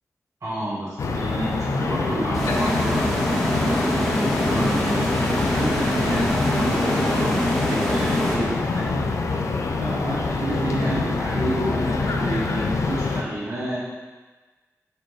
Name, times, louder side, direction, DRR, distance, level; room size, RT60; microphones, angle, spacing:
voice 1, 0.4-9.1 9.7-13.8, right 1 dB, 75° right, -8 dB, 1.1 m, -30 dB
sound 1, 1.0-13.2, left 3 dB, 70° left, 0.4 m, -25 dB
sound 2, 2.3-9.0, equal, 5° left, 0.9 m, -25 dB
4.2 x 2.6 x 4.8 m, 1.3 s
wide cardioid pair, 95°, 6 cm